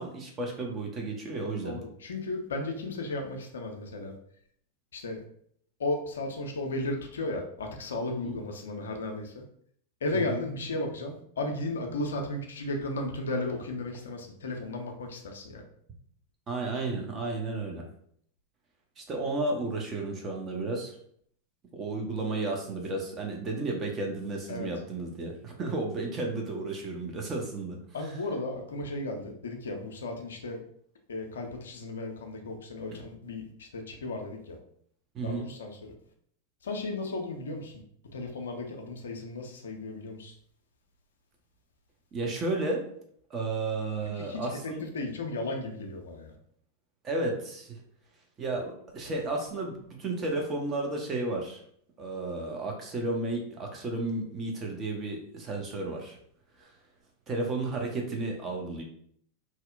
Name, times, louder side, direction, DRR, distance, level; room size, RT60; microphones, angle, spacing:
voice 1, 0.0-1.8 8.2-8.4 10.1-10.4 16.5-17.8 19.0-21.0 21.7-27.8 35.1-35.5 42.1-42.9 43.3-44.8 47.0-47.8 48.4-51.6 52.0-56.2 56.6-56.7 57.3-58.8, right 2 dB, 25° right, 1 dB, 0.6 m, -33 dB
voice 2, 1.6-4.1 4.9-5.2 5.8-9.4 10.0-15.6 24.5-24.7 27.9-30.6 31.1-34.6 35.2-35.8 36.6-37.7 38.1-40.3 44.2-46.3, left 2 dB, 65° left, 3 dB, 0.4 m, -35 dB
2.7 x 2.0 x 2.4 m, 0.64 s
figure-of-eight pair, 90°, 0 cm